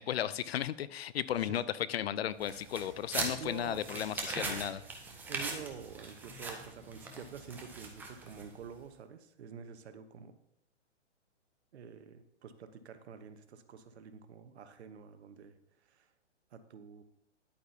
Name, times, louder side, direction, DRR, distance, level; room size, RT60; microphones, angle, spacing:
voice 1, 0.0-4.8, left 10 dB, 55° left, 17 dB, 0.5 m, -35 dB
sound 1, 2.4-8.6, right 3 dB, 5° right, 0.6 m, -41 dB
voice 2, 3.4-4.1 5.3-10.4 11.7-15.6 15.8-16.1 16.5-17.0, right 7 dB, 60° right, 10 dB, 1.1 m, -48 dB
10.5 x 8.4 x 2.8 m, 0.79 s
hypercardioid pair, 145°, 36 cm